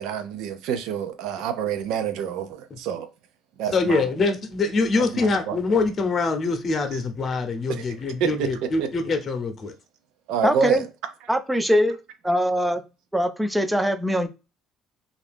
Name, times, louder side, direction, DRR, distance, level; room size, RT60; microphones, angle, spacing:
voice 1, 0.0-3.1 3.6-4.0 5.5-5.6 7.7-7.8 8.2-8.5 8.8-8.9 10.3-10.9, right 7 dB, 80° right, 0.5 m, -27 dB
voice 2, 3.7-9.7, left 3 dB, 40° left, 0.8 m, -24 dB
voice 3, 10.4-10.8 11.3-12.0 12.2-12.8 13.1-14.3, equal, 5° right, 0.4 m, -22 dB
2.8 x 2.5 x 3.4 m
cardioid pair, 105°, 0 cm